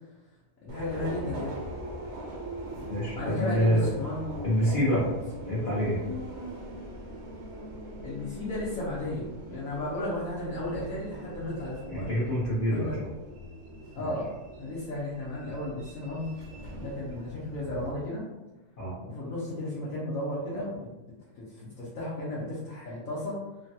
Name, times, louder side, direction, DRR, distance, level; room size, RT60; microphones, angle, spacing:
voice 1, 0.6-1.5 3.1-4.2 5.5-5.6 8.0-12.1 12.7-13.0 13.9-16.3 16.8-18.2 19.0-20.9 21.4-23.4, left 1 dB, 65° left, -7 dB, 1.1 m, -34 dB
Subway metro underground, 0.7-17.9, right 1 dB, 65° right, 0.7 m, -41 dB
voice 2, 2.9-3.8 4.4-5.1 5.5-6.0 11.9-13.1 14.0-14.1 18.8-19.0, equal, 40° left, -9 dB, 0.8 m, -26 dB
3.1 x 2.2 x 2.7 m, 1.0 s
omnidirectional pair, 1.6 m